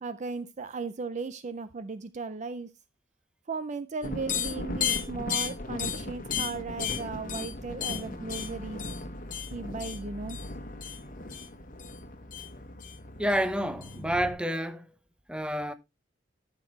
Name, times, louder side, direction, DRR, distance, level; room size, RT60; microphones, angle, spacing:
voice 1, 0.0-2.7 3.5-8.8 9.5-10.4, right 4 dB, 40° right, 0.4 m, -36 dB
sound 1, 4.0-14.3, left 5 dB, 45° left, 1.3 m, -35 dB
voice 2, 13.2-14.9 15.3-15.7, equal, 5° right, 0.8 m, -29 dB
13.0 x 5.9 x 3.2 m
head